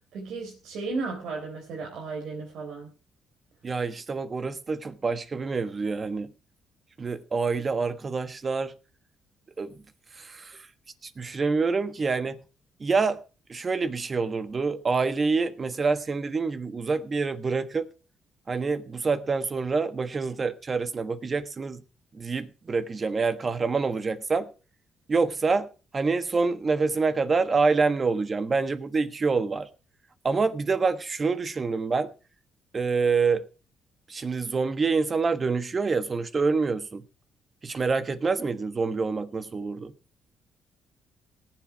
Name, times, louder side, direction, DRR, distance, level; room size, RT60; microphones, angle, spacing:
voice 1, 0.0-2.9, right 3 dB, 75° right, 3.8 m, -34 dB
voice 2, 3.6-6.3 7.0-8.7 9.6-9.8 10.1-10.6 11.0-12.4 12.8-13.2 13.5-17.9 18.5-21.8 22.1-24.5 25.1-25.7 25.9-29.7 30.2-32.1 32.7-33.4 34.1-37.0 37.6-39.9, right 4 dB, 35° right, 1.3 m, -26 dB
18.5 x 7.7 x 4.8 m
cardioid pair, 90°, 0 cm